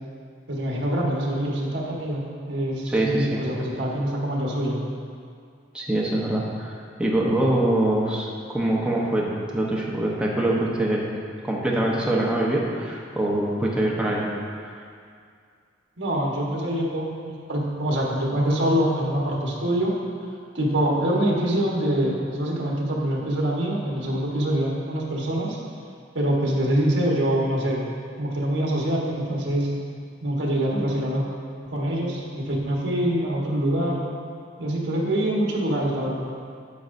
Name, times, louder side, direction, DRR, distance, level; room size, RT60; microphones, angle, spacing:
voice 1, 0.5-4.8 16.0-19.9 20.5-25.6 26.1-27.8 28.2-29.7 30.2-31.2 31.6-34.1 34.6-36.3, right 1 dB, 70° right, -3 dB, 1.3 m, -25 dB
voice 2, 2.9-3.4 5.7-11.1 11.4-14.3 14.6-14.8, right 1 dB, 5° right, -4 dB, 1.0 m, -24 dB
9.2 x 6.8 x 2.6 m, 2.2 s
head